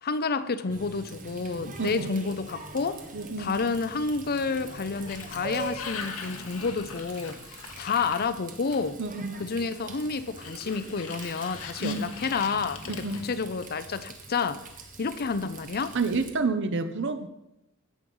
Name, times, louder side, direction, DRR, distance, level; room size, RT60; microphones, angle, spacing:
voice 1, 0.0-3.0 3.4-7.4 7.8-9.0 9.4-12.8 13.2-14.7 15.0-16.0, left 4 dB, 45° left, 13 dB, 0.6 m, -29 dB
Water tap faucet, 0.7-16.3, right 3 dB, 40° right, 1.5 m, -44 dB
voice 2, 3.1-3.5 9.0-9.4 11.8-12.0 12.9-13.2 15.9-17.3, right 3 dB, 60° right, 10 dB, 0.9 m, -29 dB
Sliding door, 4.5-9.1 10.3-14.0, left 6 dB, 85° left, 1.4 m, -42 dB
16.5 x 6.3 x 5.5 m, 0.88 s
head